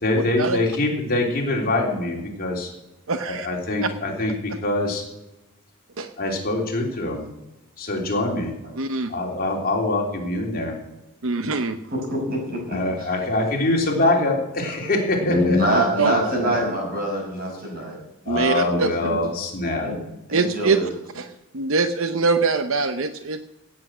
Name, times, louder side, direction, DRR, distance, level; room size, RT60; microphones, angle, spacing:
voice 1, 0.0-2.7 3.3-5.0 6.2-7.2 7.8-8.5 9.1-10.7 12.7-16.6 18.2-19.9, left 2 dB, 45° left, 0 dB, 3.3 m, -24 dB
voice 2, 3.1-3.5 6.0-6.1 8.8-9.1 11.2-11.8 15.7-16.1 18.3-18.9 20.3-20.8 21.1-21.3 21.5-23.4, right 4 dB, 65° right, 9 dB, 0.8 m, -23 dB
voice 3, 11.9-12.8 15.2-18.0 18.6-19.2 19.8-20.0 20.3-20.9, equal, 40° right, 0 dB, 5.9 m, -24 dB
17.5 x 8.4 x 6.2 m, 0.96 s
head